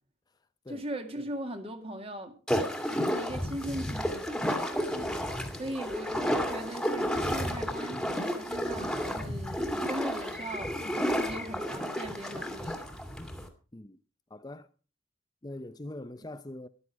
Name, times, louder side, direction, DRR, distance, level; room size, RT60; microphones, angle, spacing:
voice 1, 0.7-2.4 3.1-4.5 5.6-10.8 11.2-12.9, right 1 dB, 30° right, 2.2 m, -39 dB
sound 1, 2.5-13.5, equal, 5° left, 2.1 m, -32 dB
voice 2, 14.3-14.7 15.4-16.7, left 1 dB, 20° left, 0.6 m, -43 dB
14.0 x 12.0 x 4.8 m
head